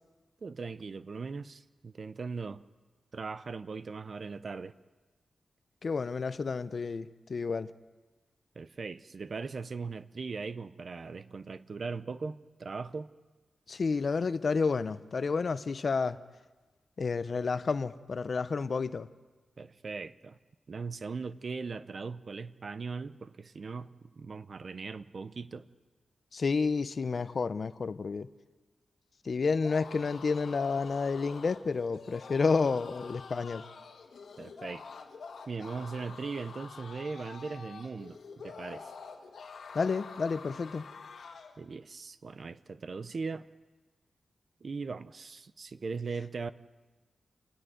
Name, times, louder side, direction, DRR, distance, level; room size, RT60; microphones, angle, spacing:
voice 1, 0.4-2.6 3.1-4.7 8.6-13.1 19.6-20.4 20.7-25.7 34.4-34.8 35.5-38.9 41.6-43.5 44.6-46.5, right 4 dB, 45° right, 14 dB, 0.6 m, -39 dB
voice 2, 5.8-7.7 13.7-16.2 17.0-19.1 26.3-28.3 29.2-33.6 39.7-40.9, left 4 dB, 45° left, 13 dB, 0.6 m, -30 dB
sound 1, 29.5-41.6, left 5 dB, 70° left, 1.6 m, -47 dB
29.0 x 10.0 x 9.2 m, 1.3 s
wide cardioid pair, 155°, 0 cm